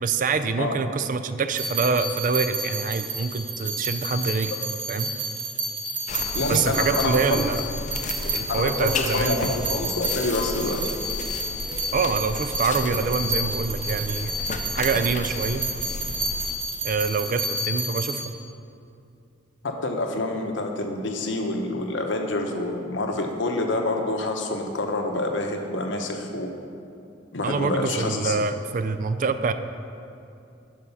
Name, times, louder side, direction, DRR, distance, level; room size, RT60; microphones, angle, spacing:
voice 1, 0.0-4.5 4.9-5.1 6.5-7.6 8.3-9.5 11.9-14.3 14.7-15.7 16.8-18.2 27.4-29.5, right 4 dB, 45° right, 10 dB, 0.4 m, -25 dB
sound 1, 1.5-18.3, right 1 dB, 85° right, 1.5 m, -30 dB
sound 2, 6.1-16.6, left 3 dB, 40° left, 0.5 m, -33 dB
voice 2, 6.3-7.4 8.5-10.8 19.6-26.5 27.3-28.4, left 2 dB, 85° left, 3 dB, 1.0 m, -27 dB
11.5 x 4.9 x 5.6 m, 2.6 s
head